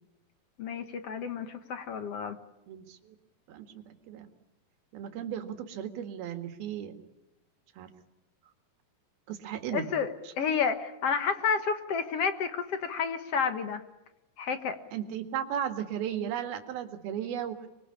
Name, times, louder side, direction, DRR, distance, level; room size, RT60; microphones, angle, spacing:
voice 1, 0.6-2.4 9.7-10.1 10.4-13.8 14.4-14.8, left 6 dB, 60° left, 9 dB, 1.7 m, -30 dB
voice 2, 2.7-3.2 3.5-4.3 4.9-6.9 7.8-7.9 9.3-9.9 10.3-10.4 14.9-17.6, right 9 dB, 75° right, 6 dB, 3.7 m, -35 dB
25.5 x 22.5 x 9.9 m, 0.95 s
omnidirectional pair, 4.4 m